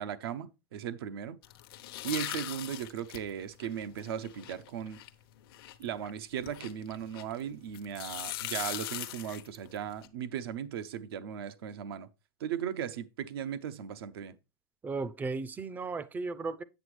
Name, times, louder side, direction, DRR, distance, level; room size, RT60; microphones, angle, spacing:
voice 1, 0.0-1.4 2.0-5.0 5.8-12.1 12.4-14.4, right 9 dB, 85° right, 0.6 m, -37 dB
sound 1, 1.4-7.4 7.7-10.1, left 14 dB, 70° left, 0.8 m, -41 dB
voice 2, 14.8-16.6, right 4 dB, 15° right, 0.4 m, -35 dB
8.0 x 7.0 x 3.2 m
supercardioid pair, 135°, 12 cm